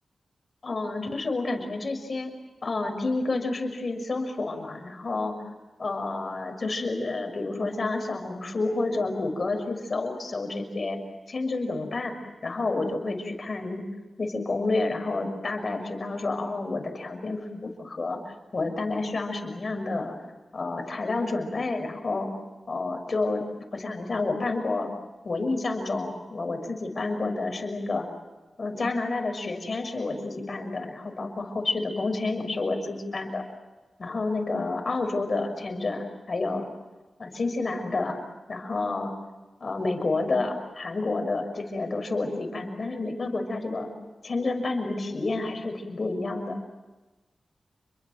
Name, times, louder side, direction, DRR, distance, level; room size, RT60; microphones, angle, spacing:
voice 1, 0.6-2.3 2.6-5.3 5.8-11.0 11.3-13.8 14.2-18.2 18.5-20.1 20.5-22.3 22.7-24.9 25.2-28.1 28.6-33.4 34.0-36.7 37.2-38.2 38.5-39.1 39.6-43.9 44.2-46.6, left 3 dB, 55° left, 5 dB, 6.2 m, -29 dB
30.0 x 23.0 x 7.8 m, 1.2 s
cardioid pair, 55°, 0 cm